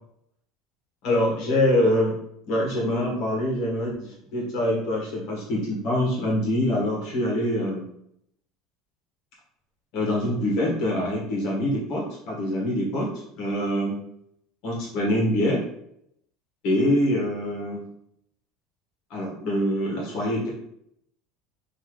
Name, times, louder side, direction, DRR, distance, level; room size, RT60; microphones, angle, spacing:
voice 1, 1.0-2.2 2.5-7.8 9.9-13.1 13.4-14.0 14.6-15.6 16.6-17.8 19.1-20.5, left 1 dB, 45° left, -3 dB, 1.4 m, -24 dB
5.5 x 2.9 x 3.2 m, 0.73 s
cardioid pair, 180°, 0 cm